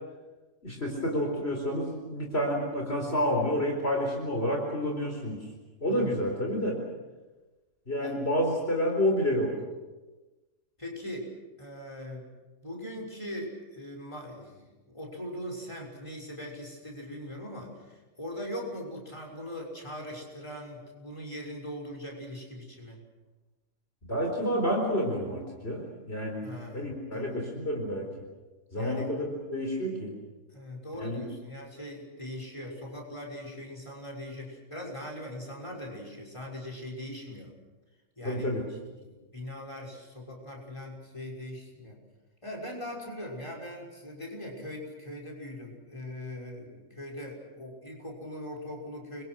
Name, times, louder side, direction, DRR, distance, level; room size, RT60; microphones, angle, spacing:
voice 1, 0.6-5.4 5.8-6.8 7.9-9.5 24.1-28.1 28.7-30.1 31.0-31.2 38.2-38.6, equal, 50° left, 1 dB, 4.6 m, -29 dB
voice 2, 5.9-6.3 8.0-8.1 10.8-11.3 11.6-12.3 12.6-23.0 26.4-26.9 27.1-27.4 28.7-29.1 30.5-37.5 38.2-38.5 38.9-42.0 42.4-49.2, left 1 dB, 20° left, 0 dB, 6.1 m, -40 dB
30.0 x 23.5 x 6.3 m, 1.2 s
omnidirectional pair, 1.4 m